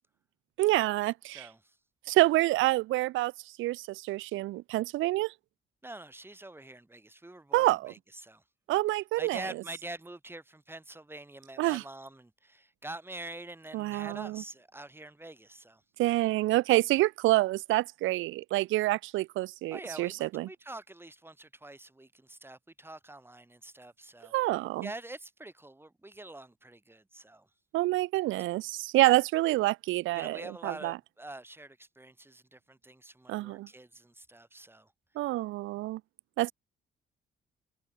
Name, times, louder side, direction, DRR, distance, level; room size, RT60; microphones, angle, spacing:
voice 1, 0.6-1.5 2.1-3.3 3.6-5.3 7.5-7.9 8.7-9.4 11.6-11.8 13.7-14.4 16.0-20.5 24.3-24.9 27.7-31.0 33.3-33.7 35.2-36.0 36.4-36.5, right 18 dB, 85° right, 0.4 m, -27 dB
voice 2, 1.3-1.8 5.8-8.4 9.2-15.8 19.7-27.5 30.1-34.9, right 2 dB, 10° right, 4.0 m, -46 dB
cardioid pair, 90°, 20 cm